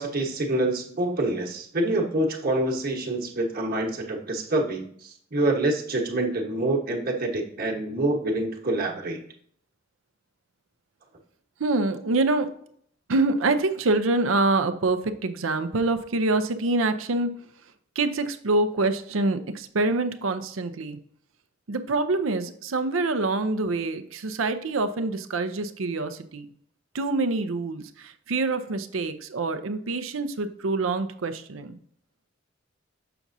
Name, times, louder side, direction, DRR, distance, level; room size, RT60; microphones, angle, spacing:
voice 1, 0.0-9.2, right 2 dB, 50° right, 1 dB, 1.2 m, -26 dB
voice 2, 11.6-12.5 13.1-17.3 18.0-21.0 21.7-26.5 26.9-31.8, right 2 dB, 85° right, 10 dB, 0.6 m, -26 dB
6.9 x 6.0 x 2.7 m, 0.63 s
head